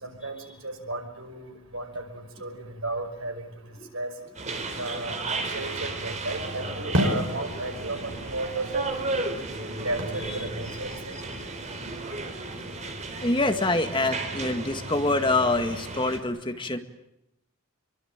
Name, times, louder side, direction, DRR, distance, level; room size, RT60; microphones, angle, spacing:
voice 1, 0.0-2.0 2.4-3.5 3.9-4.1 4.8-5.1 5.5-9.3 9.8-11.2, right 2 dB, 80° right, 6 dB, 5.6 m, -33 dB
sound 1, 4.3-16.2, right 2 dB, 35° right, 4.1 m, -34 dB
sound 2, 6.3-12.3, equal, 65° right, 6.6 m, -34 dB
voice 2, 13.2-16.8, left 2 dB, 25° left, 7 dB, 1.9 m, -25 dB
26.5 x 24.0 x 8.9 m, 0.84 s
head